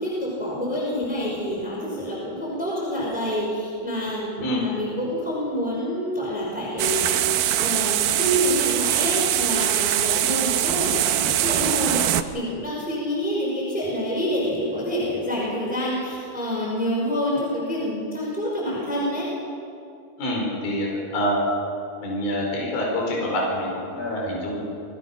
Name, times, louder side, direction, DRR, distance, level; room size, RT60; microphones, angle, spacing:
voice 1, 0.0-7.1 7.6-19.3, equal, ahead, -5 dB, 5.0 m, -27 dB
sound 1, 6.8-12.2, right 12 dB, 75° right, 2.1 m, -22 dB
voice 2, 20.2-20.9 21.1-21.4 22.0-24.6, equal, 60° left, -2 dB, 6.7 m, -26 dB
28.0 x 22.5 x 5.9 m, 2.5 s
omnidirectional pair, 4.7 m